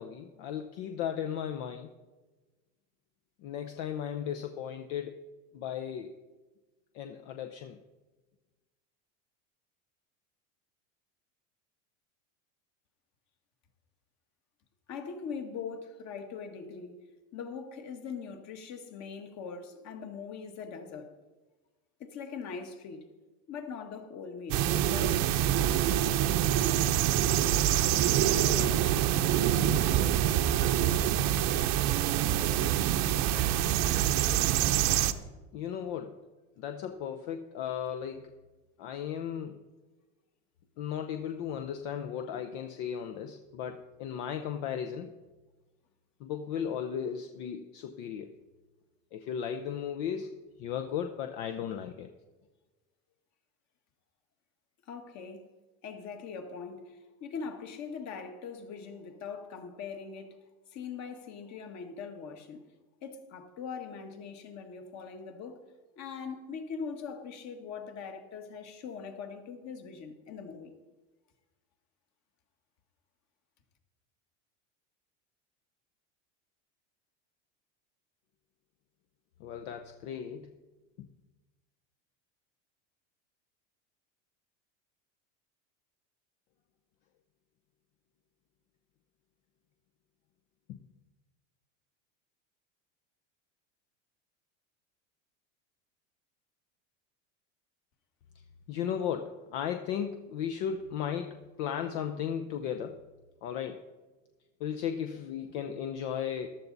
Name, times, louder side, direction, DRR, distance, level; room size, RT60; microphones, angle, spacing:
voice 1, 0.0-1.9 3.4-5.3 5.5-6.1 6.9-7.8 28.1-28.9 35.5-36.2 36.6-38.3 38.8-39.6 40.8-45.1 46.2-48.3 49.1-50.3 50.6-52.1 79.4-80.5 81.0-81.1 90.7-90.8 98.7-103.0 103.4-103.8 104.6-106.5, left 8 dB, 65° left, 0.9 m, -36 dB
voice 2, 14.9-17.0 17.3-21.2 22.0-23.1 23.5-25.2 54.9-55.5 55.8-60.4 60.7-62.6 63.0-65.6 66.0-70.7, left 5 dB, 45° left, 1.7 m, -41 dB
sound 1, 24.5-35.1, right 11 dB, 50° right, 0.8 m, -26 dB
14.0 x 12.0 x 4.0 m
supercardioid pair, 125°, 38 cm